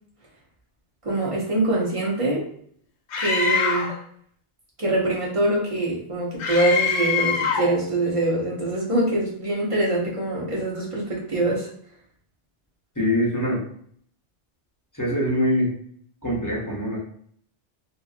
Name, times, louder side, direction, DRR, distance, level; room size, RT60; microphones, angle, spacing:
voice 1, 1.0-2.5 3.2-3.9 4.8-11.7, right 2 dB, 35° right, -4 dB, 0.8 m, -24 dB
Screaming, 3.1-4.0 6.4-7.8, left 5 dB, 80° left, 0.9 m, -24 dB
voice 2, 13.0-13.6 14.9-15.7 16.2-17.0, equal, 20° left, -5 dB, 0.7 m, -23 dB
2.6 x 2.5 x 2.4 m, 0.62 s
omnidirectional pair, 1.2 m